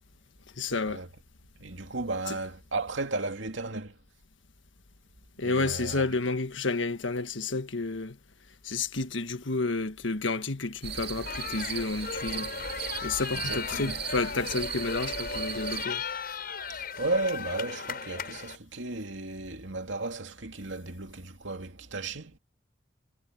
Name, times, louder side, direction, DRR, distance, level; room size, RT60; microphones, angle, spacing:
voice 1, 0.5-1.0 2.3-2.4 5.4-8.2 8.6-12.5 13.0-16.0, left 3 dB, 85° left, 1.6 m, -30 dB
voice 2, 1.6-4.0 5.4-6.0 13.4-13.9 16.7-22.4, right 2 dB, 80° right, 2.4 m, -34 dB
sound 1, 10.8-15.9, right 7 dB, 60° right, 2.5 m, -37 dB
sound 2, 11.3-18.6, left 5 dB, 55° left, 7.4 m, -37 dB
head